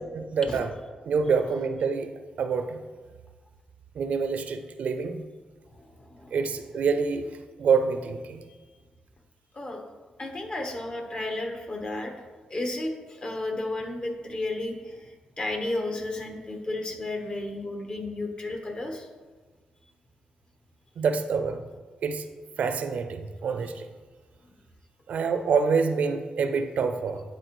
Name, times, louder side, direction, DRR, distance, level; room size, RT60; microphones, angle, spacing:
voice 1, 0.1-0.7 1.1-2.1 2.4-2.8 4.0-5.2 6.3-7.2 7.6-8.4 21.0-21.6 22.0-22.2 22.6-23.9 25.1-27.2, right 5 dB, 70° right, 8 dB, 0.5 m, -26 dB
voice 2, 5.8-6.4 9.5-9.8 10.2-12.1 12.5-15.1 15.4-19.1, left 2 dB, 35° left, 3 dB, 1.1 m, -33 dB
10.0 x 4.3 x 3.1 m, 1.4 s
cardioid pair, 75°, 3 cm